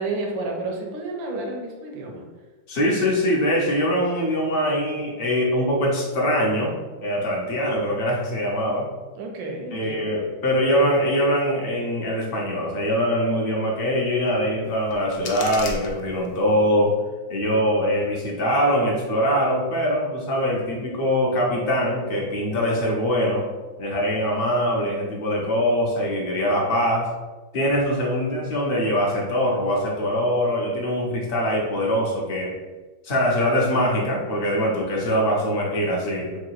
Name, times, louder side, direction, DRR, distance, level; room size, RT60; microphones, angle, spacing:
voice 1, 0.0-2.3 9.2-10.1, right 2 dB, 85° right, 1 dB, 1.5 m, -31 dB
voice 2, 2.7-6.7 7.0-8.9 9.7-16.9 17.3-23.4 23.8-27.1 27.5-32.5 33.0-36.4, equal, 45° left, -3 dB, 0.7 m, -23 dB
sound 1, 14.6-16.6, left 3 dB, 80° left, 1.3 m, -36 dB
3.8 x 2.3 x 4.6 m, 1.2 s
omnidirectional pair, 2.0 m